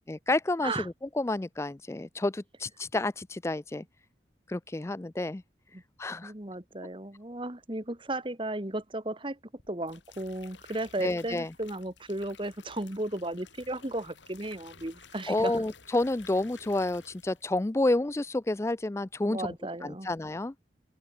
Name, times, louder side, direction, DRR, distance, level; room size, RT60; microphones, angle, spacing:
voice 1, 0.1-0.8 1.2-3.8 4.5-5.4 6.0-6.3 11.0-11.5 15.3-19.5 19.8-20.5, left 2 dB, 15° left, 0.4 m, -29 dB
voice 2, 6.2-9.4 9.7-15.5 19.3-20.1, right 1 dB, 25° right, 1.6 m, -35 dB
sound 1, 9.6-17.6 17.9-18.3, left 5 dB, 85° left, 7.3 m, -54 dB
head